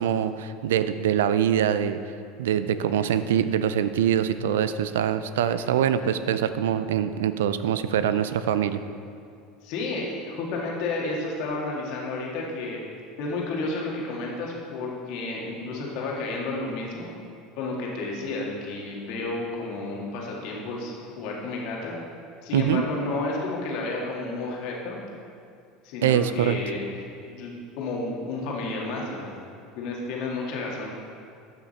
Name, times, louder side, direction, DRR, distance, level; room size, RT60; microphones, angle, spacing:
voice 1, 0.0-2.0 2.4-8.8 22.5-22.8 26.0-26.6, right 9 dB, 75° right, 12 dB, 0.4 m, -24 dB
voice 2, 5.4-6.0 9.6-12.8 13.2-17.1 17.6-21.9 22.4-25.0 25.8-26.9 27.2-29.4 29.8-30.9, left 2 dB, 60° left, -2 dB, 2.0 m, -31 dB
12.5 x 5.9 x 4.2 m, 2.4 s
hypercardioid pair, 75°, 0 cm